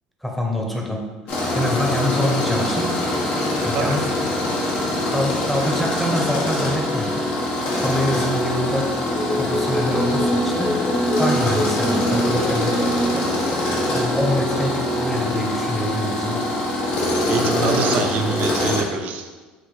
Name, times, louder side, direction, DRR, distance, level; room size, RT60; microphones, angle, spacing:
voice 1, 0.2-1.0 1.5-2.9 3.6-4.1 5.1-7.2 7.8-8.9 9.4-10.7 11.2-12.8 13.9-16.4, left 1 dB, 5° left, 0 dB, 0.8 m, -25 dB
Tools, 1.3-18.8, left 1 dB, 65° left, 1.1 m, -23 dB
sound 1, 9.1-14.7, equal, 30° left, 0.5 m, -26 dB
voice 2, 17.3-19.3, right 5 dB, 60° right, 5 dB, 0.6 m, -25 dB
6.0 x 2.6 x 3.1 m, 1.3 s
supercardioid pair, 95°, 3 cm